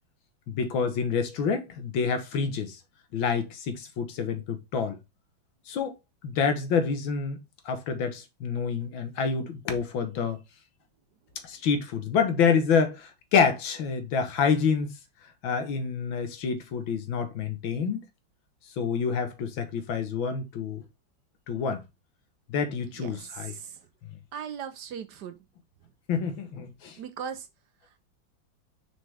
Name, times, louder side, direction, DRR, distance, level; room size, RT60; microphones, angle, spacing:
voice 1, 0.5-2.8 3.1-5.0 5.7-6.0 6.2-7.4 7.7-10.4 11.4-14.9 15.4-18.0 18.8-20.8 21.5-21.8 22.5-23.5 26.1-27.0, left 6 dB, 80° left, 1.8 m, -27 dB
voice 2, 23.0-23.8 24.3-25.4 27.0-27.5, right 7 dB, 65° right, 1.2 m, -38 dB
6.4 x 4.8 x 3.4 m
omnidirectional pair, 2.1 m